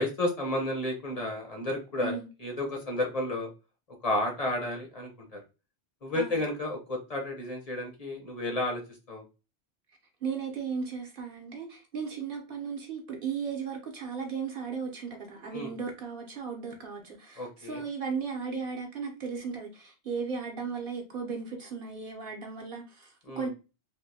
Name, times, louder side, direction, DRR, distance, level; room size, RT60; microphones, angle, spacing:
voice 1, 0.0-3.5 4.0-5.4 6.0-8.8 9.1-9.2 15.5-15.7 17.4-17.8 23.3-23.5, left 1 dB, 35° left, 0.8 m, -32 dB
voice 2, 10.2-23.5, right 5 dB, 55° right, 0.9 m, -36 dB
3.4 x 2.6 x 2.7 m
omnidirectional pair, 1.2 m